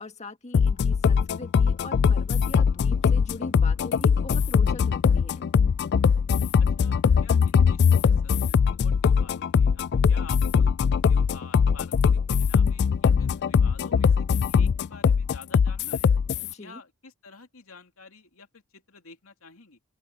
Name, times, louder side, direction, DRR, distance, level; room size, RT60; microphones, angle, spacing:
voice 1, 0.0-5.5 16.4-16.8, left 2 dB, 35° left, 1.8 m, -42 dB
sound 1, 0.5-16.5, left 6 dB, 55° left, 0.3 m, -21 dB
voice 2, 6.8-10.7 11.1-16.1 16.6-19.8, left 4 dB, 85° left, 2.7 m, -49 dB
open air
head